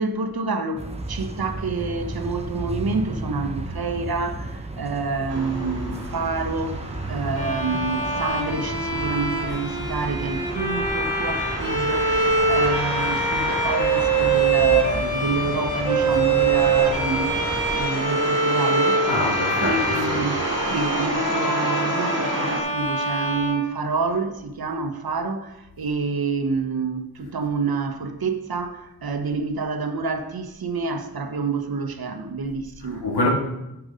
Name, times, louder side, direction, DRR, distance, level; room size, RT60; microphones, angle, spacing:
voice 1, 0.0-17.4 17.7-19.1 19.6-33.0, right 4 dB, 70° right, 1.1 m, -28 dB
sound 1, 0.8-17.8, right 1 dB, 15° right, 1.0 m, -34 dB
sound 2, 5.3-22.6, right 1 dB, 40° right, 3.3 m, -31 dB
Bowed string instrument, 7.4-24.3, right 3 dB, 20° left, 2.7 m, -24 dB
voice 2, 19.1-20.3 20.8-20.9 32.8-33.3, left 2 dB, 85° left, 2.3 m, -26 dB
10.5 x 7.0 x 5.1 m
wide cardioid pair, 100°, 38 cm